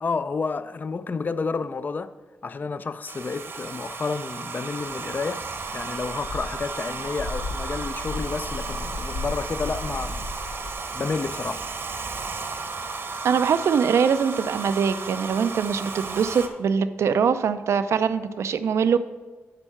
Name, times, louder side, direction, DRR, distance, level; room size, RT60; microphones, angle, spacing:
voice 1, 0.0-2.1 2.4-5.5 5.7-10.3 10.9-11.7, left 4 dB, 40° left, 0.4 m, -30 dB
Domestic sounds home sounds, 3.1-16.5, right 4 dB, 55° right, 0.9 m, -34 dB
sound 1, 5.5-10.7, left 3 dB, 80° left, 0.7 m, -35 dB
voice 2, 13.2-19.0, right 6 dB, 75° right, 0.4 m, -23 dB
9.0 x 4.4 x 5.8 m
cardioid pair, 65°, 5 cm